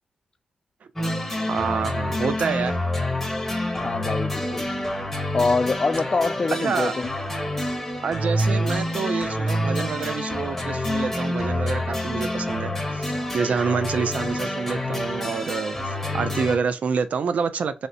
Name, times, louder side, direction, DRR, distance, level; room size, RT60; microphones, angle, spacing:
sound 1, 1.0-16.6, left 1 dB, 10° left, 1.1 m, -27 dB
voice 1, 1.5-2.7 6.6-6.9 8.0-17.9, right 6 dB, 75° right, 0.4 m, -27 dB
voice 2, 3.7-4.7 5.3-7.1, left 3 dB, 40° left, 0.5 m, -25 dB
3.1 x 2.8 x 2.7 m
cardioid pair, 60°, 2 cm